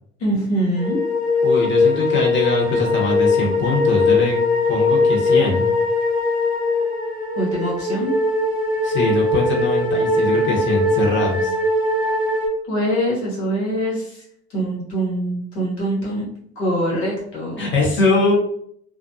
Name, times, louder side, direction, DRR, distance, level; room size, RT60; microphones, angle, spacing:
voice 1, 0.2-1.0 7.3-8.1 12.7-14.2 14.5-16.2 16.6-17.6, right 1 dB, 90° left, -5 dB, 1.2 m, -23 dB
sound 1, 0.8-12.5, left 2 dB, 15° right, 1.1 m, -20 dB
voice 2, 1.4-4.4 4.7-5.7 8.8-11.5 17.6-18.3, left 3 dB, 35° left, -1 dB, 1.0 m, -21 dB
2.4 x 2.2 x 2.6 m, 0.67 s
hypercardioid pair, 65°, 32 cm